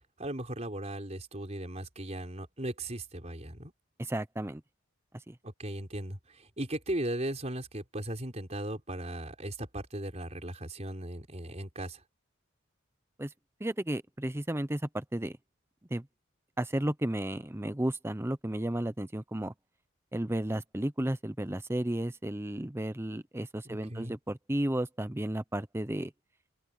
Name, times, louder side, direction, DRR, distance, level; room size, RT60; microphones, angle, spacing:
voice 1, 0.2-3.7 5.4-12.0 23.6-24.1, right 1 dB, 35° right, 4.4 m, -37 dB
voice 2, 4.0-4.6 5.3-5.4 13.2-13.3 13.6-15.4 15.9-16.1 16.6-19.5 20.1-26.1, right 1 dB, 10° right, 0.7 m, -33 dB
head